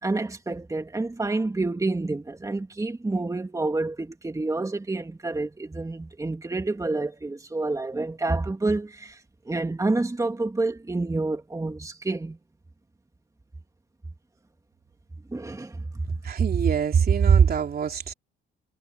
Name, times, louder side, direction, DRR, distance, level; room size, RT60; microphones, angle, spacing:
voice 1, 0.0-9.2 9.5-12.4 15.3-15.8, right 2 dB, 15° right, 2.4 m, -28 dB
voice 2, 16.2-18.1, right 7 dB, 50° right, 3.2 m, -21 dB
cardioid pair, 90°, 20 cm